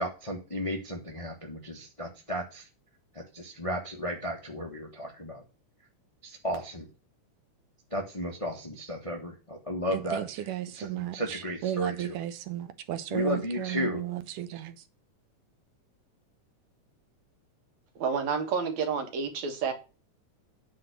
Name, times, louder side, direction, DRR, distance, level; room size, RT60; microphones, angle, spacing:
voice 1, 0.0-2.7 3.3-5.4 6.2-6.9 7.9-10.2 10.7-12.1 13.1-14.0, equal, 40° left, 0.4 m, -34 dB
voice 2, 9.9-14.8, right 13 dB, 85° right, 2.4 m, -34 dB
voice 3, 18.0-19.7, right 6 dB, 65° right, 2.8 m, -29 dB
9.3 x 4.2 x 6.7 m
omnidirectional pair, 3.6 m